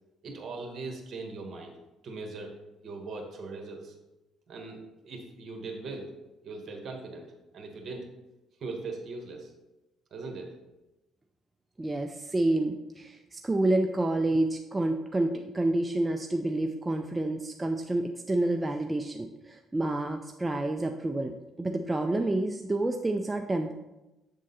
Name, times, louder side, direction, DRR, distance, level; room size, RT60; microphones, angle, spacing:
voice 1, 0.2-1.7 2.0-2.5 2.8-3.9 4.5-6.1 6.4-8.1 8.6-9.5 10.1-10.5, right 3 dB, 50° right, 2 dB, 1.5 m, -40 dB
voice 2, 11.8-23.7, right 2 dB, 15° right, 4 dB, 0.4 m, -29 dB
7.6 x 3.7 x 4.1 m, 1.0 s
cardioid pair, 110°, 0 cm